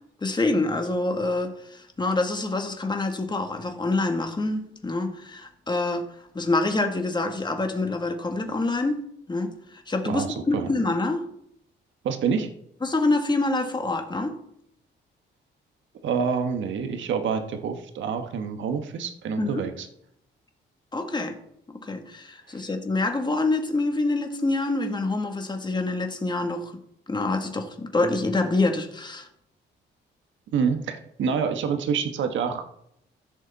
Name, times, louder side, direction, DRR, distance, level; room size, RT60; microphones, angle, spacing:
voice 1, 0.2-6.0 6.3-9.0 9.3-11.2 12.8-14.4 19.4-19.6 20.9-21.4 21.8-26.7 27.1-29.3, left 2 dB, 20° left, 1.8 m, -26 dB
voice 2, 10.0-10.7 12.0-12.5 16.0-19.9 22.5-22.6 30.5-32.7, right 6 dB, 70° right, 1.4 m, -27 dB
15.0 x 6.5 x 4.2 m
cardioid pair, 90°, 20 cm